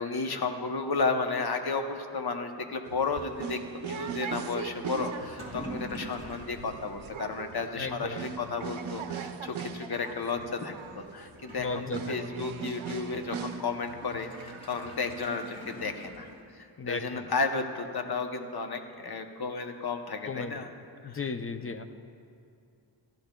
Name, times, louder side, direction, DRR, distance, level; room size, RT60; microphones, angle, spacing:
voice 1, 0.0-3.6 3.9-16.3 16.6-20.7 21.0-21.3 21.6-21.8, left 4 dB, 55° left, 6 dB, 0.8 m, -33 dB
sound 1, 2.8-15.9, right 7 dB, 90° right, 0.6 m, -40 dB
Toilet flush / Liquid, 5.0-16.7, equal, 10° left, 2.4 m, -48 dB
voice 2, 7.7-8.3 11.6-12.4 16.8-17.3 20.3-20.6 21.0-21.8, left 4 dB, 30° left, 8 dB, 0.4 m, -35 dB
14.5 x 13.5 x 2.2 m, 2.5 s
wide cardioid pair, 85°, 47 cm